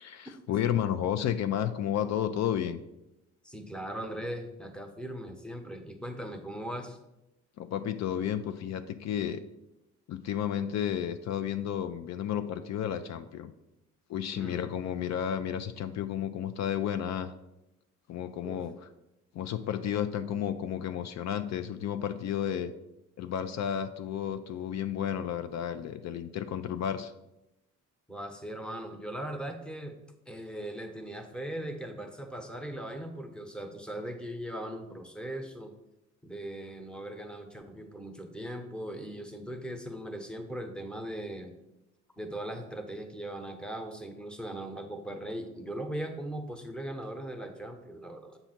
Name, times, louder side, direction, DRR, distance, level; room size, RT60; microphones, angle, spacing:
voice 1, 0.0-2.8 7.6-9.4 10.1-13.5 14.1-17.3 18.1-18.9 19.3-22.7 23.2-27.1, left 9 dB, 60° left, 10 dB, 0.4 m, -32 dB
voice 2, 3.4-7.0 14.3-14.7 18.4-18.6 28.1-30.0 30.3-35.7 36.2-41.5 42.2-48.4, right 1 dB, 5° left, 5 dB, 0.9 m, -39 dB
6.9 x 2.7 x 5.8 m, 0.91 s
cardioid pair, 90°, 30 cm